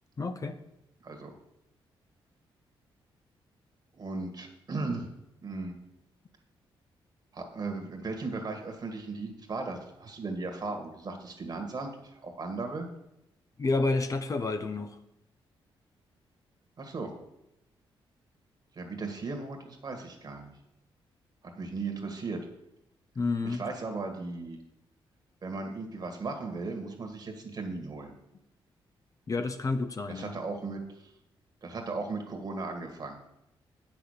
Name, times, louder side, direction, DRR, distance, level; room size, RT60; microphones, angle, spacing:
voice 1, 0.2-0.6 13.6-15.0 23.1-23.6 29.3-30.4, left 3 dB, 35° left, 8 dB, 0.7 m, -30 dB
voice 2, 3.9-5.1 5.4-5.8 7.3-12.9 16.8-17.1 18.7-20.5 21.4-22.4 23.4-24.6 25.4-28.1 30.1-31.1 31.6-33.2, right 3 dB, 45° right, 4 dB, 1.9 m, -37 dB
7.9 x 6.1 x 6.7 m, 0.84 s
cardioid pair, 80°, 9 cm